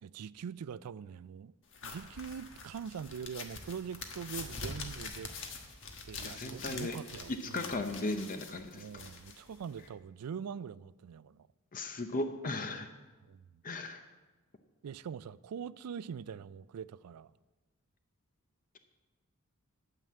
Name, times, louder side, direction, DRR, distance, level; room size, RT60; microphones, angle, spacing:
voice 1, 0.0-1.5 1.8-5.3 6.0-7.7 8.7-11.5 13.3-13.6 14.8-17.3, right 7 dB, 90° right, 0.4 m, -43 dB
sound 1, 1.7-9.9, left 4 dB, 60° left, 1.3 m, -45 dB
voice 2, 6.2-7.0 7.5-9.0 11.7-12.9 13.6-14.1, left 2 dB, 40° left, 0.6 m, -37 dB
9.2 x 9.1 x 7.5 m
head